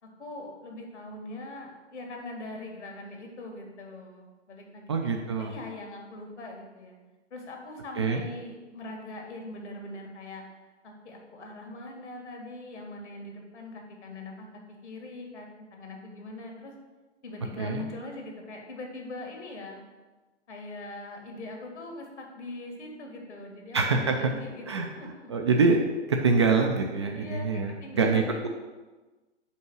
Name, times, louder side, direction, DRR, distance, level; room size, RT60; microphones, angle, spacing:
voice 1, 0.0-5.1 5.4-7.0 7.3-10.4 10.8-16.7 17.2-19.8 20.5-25.3 27.1-28.5, left 2 dB, 70° left, 1 dB, 1.9 m, -42 dB
voice 2, 4.9-5.5 8.0-8.2 17.6-17.9 23.7-24.2 24.7-24.9 25.3-25.8 26.1-28.5, right 4 dB, 25° right, 2 dB, 0.3 m, -25 dB
5.6 x 4.4 x 6.0 m, 1.2 s
figure-of-eight pair, 125°, 36 cm